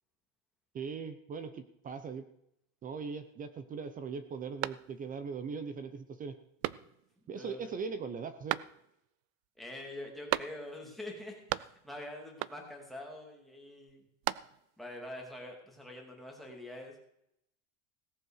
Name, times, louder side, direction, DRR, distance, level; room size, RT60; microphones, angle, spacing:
voice 1, 0.7-2.2 2.8-6.4 7.3-8.6, right 5 dB, 20° right, 11 dB, 0.7 m, -40 dB
sound 1, 4.6-5.3 5.7-5.8 6.6-7.2 8.5-9.1 10.3-10.9 11.2-12.0 12.4-12.9 13.9-14.8, right 18 dB, 55° right, 0.5 m, -37 dB
voice 2, 7.3-7.7 9.6-14.0 14.8-17.0, left 1 dB, ahead, 2 dB, 2.8 m, -45 dB
17.5 x 7.7 x 6.5 m, 0.76 s
supercardioid pair, 155°, 38 cm